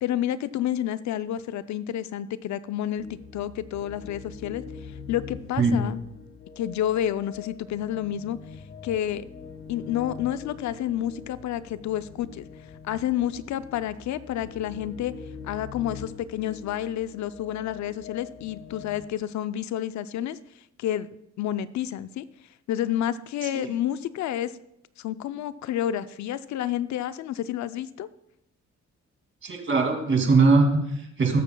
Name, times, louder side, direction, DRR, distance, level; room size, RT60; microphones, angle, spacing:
voice 1, 0.0-6.0 6.6-8.4 8.8-9.2 9.7-12.4 12.8-15.1 15.4-20.4 20.8-21.1 21.4-22.2 22.7-24.6 25.0-28.1, left 11 dB, 70° left, 14 dB, 0.5 m, -29 dB
sound 1, 3.0-19.1, left 6 dB, 45° left, 1.6 m, -43 dB
voice 2, 29.4-31.4, right 3 dB, 40° right, 2 dB, 2.5 m, -21 dB
20.5 x 6.9 x 2.2 m, 0.82 s
cardioid pair, 90°, 30 cm